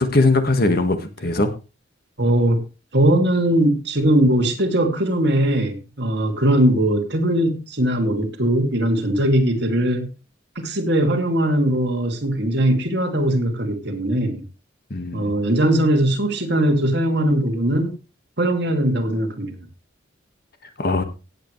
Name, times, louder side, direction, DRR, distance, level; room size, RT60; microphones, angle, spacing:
voice 1, 0.0-1.5 14.9-15.3 20.8-21.0, left 2 dB, 50° left, 8 dB, 1.7 m, -20 dB
voice 2, 2.2-2.6 2.9-10.1 10.6-14.4 15.1-17.9 18.4-19.6, right 1 dB, 55° right, 3 dB, 2.6 m, -20 dB
17.5 x 8.3 x 3.3 m, 0.31 s
head